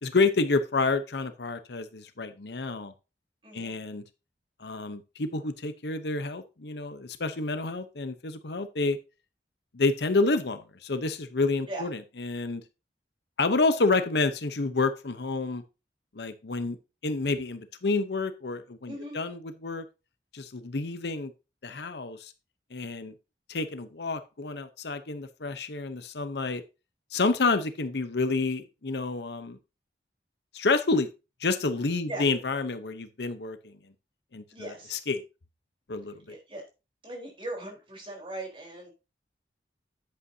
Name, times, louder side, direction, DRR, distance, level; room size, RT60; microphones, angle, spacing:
voice 1, 0.0-2.9 3.5-4.0 4.6-9.0 9.7-12.6 13.4-15.6 16.1-16.8 17.0-19.8 20.3-21.3 21.6-22.3 22.7-23.1 23.5-26.6 27.1-29.6 30.5-31.1 31.4-33.7 34.3-35.2 35.9-36.4, left 3 dB, 75° left, 10 dB, 0.8 m, -29 dB
voice 2, 3.4-3.7 11.7-11.9 18.9-19.2 32.1-32.3 34.5-35.0 36.3-36.6 37.0-38.9, right 1 dB, 30° right, 0 dB, 3.9 m, -39 dB
10.0 x 8.3 x 2.7 m, 0.29 s
head